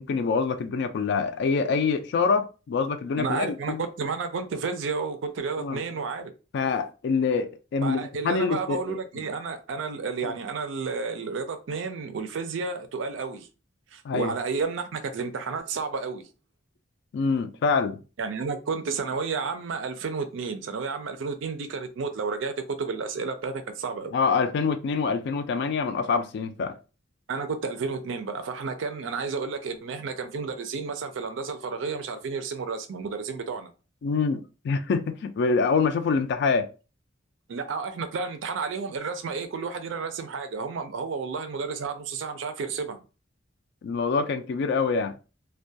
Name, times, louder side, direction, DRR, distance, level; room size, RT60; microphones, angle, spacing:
voice 1, 0.0-3.8 5.6-5.8 6.5-9.0 10.2-10.3 14.0-14.3 17.1-18.0 24.1-26.8 34.0-36.7 43.8-45.1, left 5 dB, 60° left, 0.3 m, -25 dB
voice 2, 3.2-6.3 7.8-13.5 13.9-16.2 18.2-24.2 27.3-33.7 37.5-43.0, right 4 dB, 75° right, 0.4 m, -31 dB
2.2 x 2.2 x 2.6 m
head